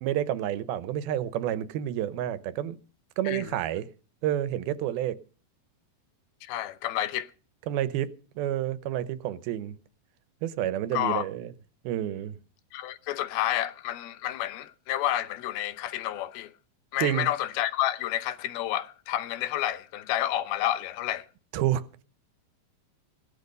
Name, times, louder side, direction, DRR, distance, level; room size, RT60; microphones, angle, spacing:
voice 1, 0.0-2.8 3.2-3.9 4.2-5.2 7.7-9.7 10.4-11.5 11.8-12.4 17.0-17.3 21.5-21.9, right 12 dB, 85° right, 2.8 m, -29 dB
voice 2, 6.4-7.3 10.9-11.3 12.7-16.5 16.9-21.3, left 13 dB, 85° left, 2.8 m, -30 dB
17.0 x 12.0 x 5.3 m
omnidirectional pair, 4.3 m